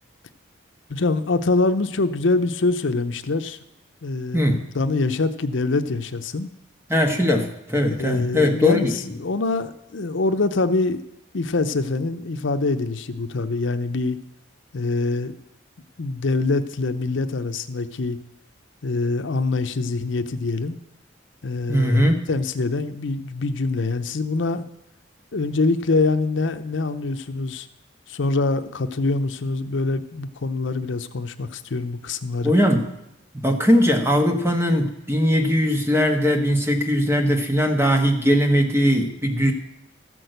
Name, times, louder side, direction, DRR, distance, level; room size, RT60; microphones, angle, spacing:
voice 1, 0.9-3.6 4.0-6.5 7.9-11.0 11.3-14.2 14.7-15.3 16.0-18.2 18.8-20.8 21.4-24.7 25.3-27.7 28.1-32.5, left 3 dB, 75° left, 9 dB, 0.7 m, -24 dB
voice 2, 4.3-4.6 6.9-8.9 21.7-22.2 32.4-32.9 33.3-39.5, equal, 15° right, 3 dB, 1.3 m, -20 dB
14.0 x 6.2 x 7.9 m, 0.84 s
head